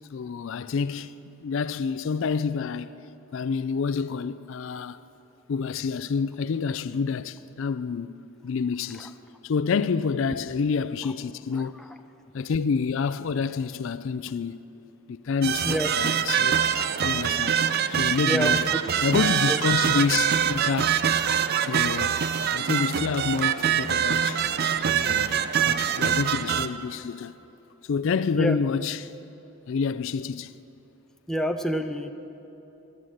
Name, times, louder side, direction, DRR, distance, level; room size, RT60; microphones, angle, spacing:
voice 1, 0.1-2.9 3.3-5.0 5.5-8.1 8.4-9.1 9.4-11.8 12.3-14.7 15.1-16.6 17.0-17.6 17.9-18.6 19.0-21.0 21.6-22.2 22.5-24.4 24.9-27.4 27.9-29.1 29.7-30.5, left 5 dB, 60° left, 0.4 m, -28 dB
voice 2, 11.5-12.0 15.6-15.9 16.4-16.5 18.3-19.1 19.4-19.6 28.3-28.6 31.3-32.1, right 1 dB, ahead, 0.5 m, -29 dB
sound 1, 15.4-26.7, right 8 dB, 45° right, 0.4 m, -24 dB
14.0 x 11.5 x 7.8 m
head